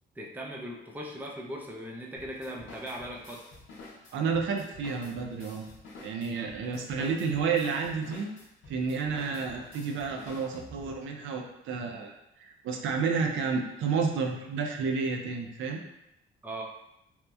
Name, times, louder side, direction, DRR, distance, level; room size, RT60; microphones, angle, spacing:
voice 1, 0.2-3.4 6.7-7.1 16.4-16.6, equal, 10° right, -1 dB, 0.4 m, -39 dB
sound 1, 2.2-11.1, left 2 dB, 75° left, 0.7 m, -50 dB
voice 2, 4.1-5.7 6.0-8.3 8.7-15.8, right 5 dB, 80° right, 3 dB, 0.4 m, -31 dB
2.9 x 2.0 x 2.2 m, 0.85 s
cardioid pair, 90°, 20 cm